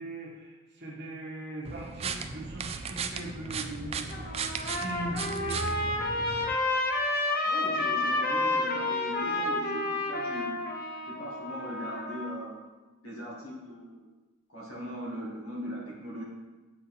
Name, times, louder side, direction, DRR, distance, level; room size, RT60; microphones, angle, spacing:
voice 1, 0.0-5.9, right 1 dB, 50° right, -4 dB, 1.6 m, -40 dB
sound 1, 1.7-6.6, right 5 dB, 25° right, 0.3 m, -36 dB
Trumpet, 3.9-12.4, left 2 dB, 40° left, 0.7 m, -30 dB
voice 2, 7.4-10.6 11.1-12.6 13.0-14.1 14.5-16.2, equal, 70° left, -4 dB, 2.2 m, -39 dB
7.8 x 4.3 x 4.5 m, 1.2 s
head